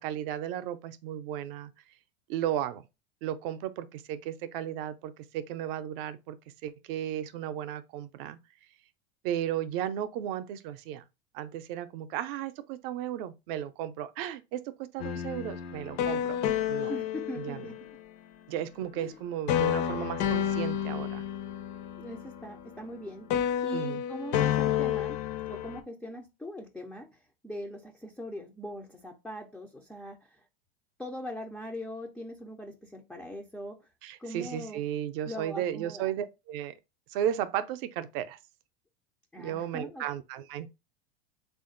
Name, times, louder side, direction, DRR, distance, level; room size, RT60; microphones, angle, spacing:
voice 1, 0.0-1.7 2.3-2.8 3.2-6.4 6.6-8.4 9.2-11.0 11.3-16.4 16.7-16.9 17.4-17.6 18.5-21.2 23.7-24.0 34.0-36.8 37.1-38.4 39.4-40.7, right 11 dB, 60° right, 0.6 m, -34 dB
sound 1, 15.0-18.1 19.5-23.0 23.3-25.8, left 10 dB, 60° left, 0.7 m, -30 dB
voice 2, 16.9-18.0 19.0-19.2 22.0-25.2 25.5-27.1 27.4-30.3 31.0-33.9 34.2-34.8 35.3-36.1 39.3-40.0, equal, ahead, 0.3 m, -41 dB
3.5 x 2.5 x 3.7 m
supercardioid pair, 120°, 32 cm